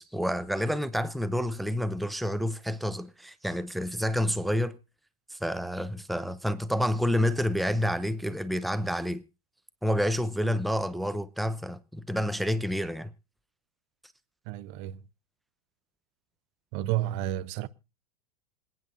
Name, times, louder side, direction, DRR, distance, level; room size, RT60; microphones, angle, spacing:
voice 1, 0.0-4.8 5.3-9.2 9.8-13.1, equal, ahead, 0.6 m, -29 dB
voice 2, 14.5-15.0 16.7-17.7, right 14 dB, 50° right, 0.8 m, -31 dB
27.0 x 9.4 x 2.6 m
hypercardioid pair, 90°, 20 cm